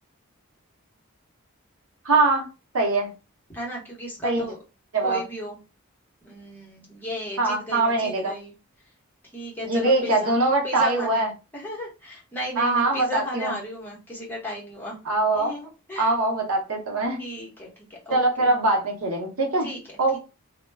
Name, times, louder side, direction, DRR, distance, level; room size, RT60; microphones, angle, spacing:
voice 1, 2.0-2.4 2.7-3.1 4.2-4.4 4.9-5.2 7.4-8.3 9.6-11.3 12.6-13.5 15.1-15.5 16.0-17.2 18.1-19.7 20.0-20.2, right 2 dB, 80° right, 0.8 m, -22 dB
voice 2, 3.5-4.6 5.0-5.6 6.2-8.5 9.3-10.3 10.6-15.0 15.3-16.1 17.2-18.5 19.6-20.2, left 1 dB, 10° left, 1.0 m, -35 dB
2.2 x 2.2 x 3.2 m
head